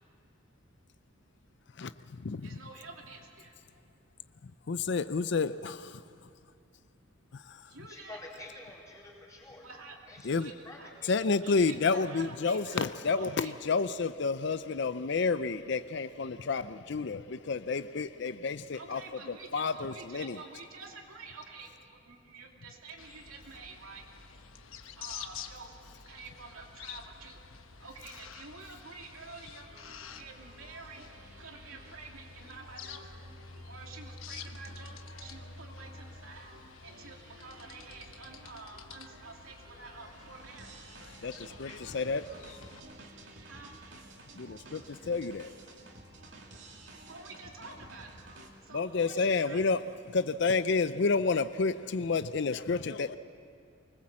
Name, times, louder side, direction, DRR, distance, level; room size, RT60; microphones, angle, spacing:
voice 1, 1.8-2.6 4.4-6.0 7.3-7.7 10.2-10.5 11.0-19.0 19.5-20.4 41.2-42.3 44.4-45.5 48.7-49.8 50.1-53.2, left 4 dB, 55° left, 13 dB, 0.5 m, -30 dB
voice 2, 2.4-3.6 7.7-8.2 9.6-10.0 10.4-10.9 11.4-13.5 18.7-24.0 25.0-27.4 27.8-29.7 30.2-31.1 31.4-33.2 33.7-36.5 36.8-40.7 43.4-43.7 47.0-48.1 48.6-49.7, right 4 dB, 80° right, 1 dB, 2.7 m, -49 dB
voice 3, 7.9-9.6 10.1-10.3 10.6-11.1, left 2 dB, 15° left, -5 dB, 4.3 m, -48 dB
sound 1, 23.0-42.8, left 5 dB, 80° left, 1.1 m, -49 dB
sound 2, 29.7-48.5, right 2 dB, 55° right, 2.6 m, -53 dB
24.5 x 20.0 x 7.5 m, 2.4 s
head